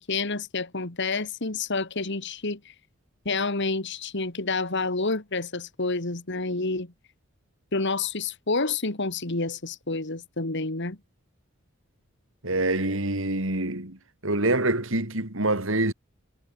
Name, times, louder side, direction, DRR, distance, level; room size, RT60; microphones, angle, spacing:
voice 1, 0.0-2.6 3.2-6.9 7.7-11.0, left 3 dB, 60° left, 2.5 m, -29 dB
voice 2, 12.4-14.0 14.2-15.9, right 2 dB, 70° right, 4.1 m, -25 dB
head